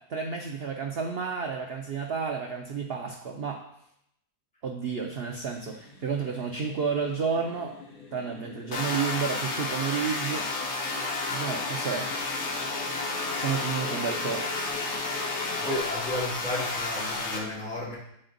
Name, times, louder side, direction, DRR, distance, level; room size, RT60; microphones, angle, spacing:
voice 1, 0.0-3.6 4.6-7.8 8.1-10.5 11.3-12.7 13.0-14.5, right 6 dB, 80° right, 2 dB, 0.5 m, -31 dB
sound 1, 5.5-15.8, left 5 dB, 70° left, 2.2 m, -42 dB
sound 2, 8.7-17.4, left 3 dB, 50° left, 1.1 m, -31 dB
voice 2, 15.6-18.0, left 1 dB, 5° left, -6 dB, 1.5 m, -33 dB
7.9 x 4.3 x 3.8 m, 0.74 s
omnidirectional pair, 1.8 m